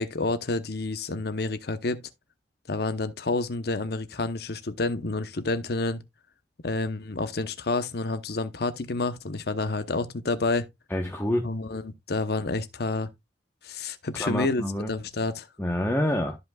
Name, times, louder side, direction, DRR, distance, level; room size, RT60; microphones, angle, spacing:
voice 1, 0.0-2.0 2.7-6.0 6.6-10.7 11.4-13.1 13.6-15.5, left 3 dB, 60° left, 0.9 m, -29 dB
voice 2, 10.9-11.5 14.2-14.9 15.6-16.4, left 1 dB, 10° left, 1.0 m, -27 dB
13.0 x 5.2 x 2.3 m
head